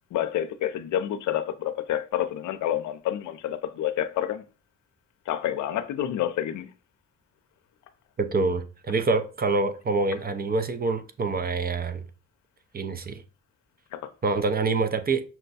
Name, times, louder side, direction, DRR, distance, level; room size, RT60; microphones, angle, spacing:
voice 1, 0.1-4.4 5.3-6.7 13.9-14.1, left 11 dB, 70° left, 0.6 m, -28 dB
voice 2, 8.2-12.1 12.7-13.2 14.2-15.2, right 3 dB, 30° right, 0.6 m, -26 dB
5.9 x 2.2 x 4.0 m
cardioid pair, 90°, 30 cm